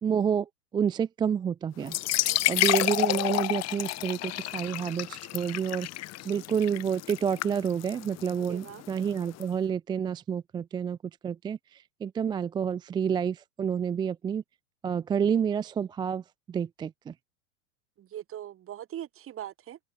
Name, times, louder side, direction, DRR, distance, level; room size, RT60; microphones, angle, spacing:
voice 1, 0.0-5.9 6.2-11.0 11.2-14.4 14.8-16.2 16.5-17.1, right 7 dB, 10° right, 0.3 m, -29 dB
sound 1, 1.8-9.4, left 16 dB, 40° left, 2.2 m, -30 dB
voice 2, 2.3-2.6 8.5-8.8 18.0-19.8, right 11 dB, 35° right, 3.7 m, -41 dB
open air
hypercardioid pair, 105°, 39 cm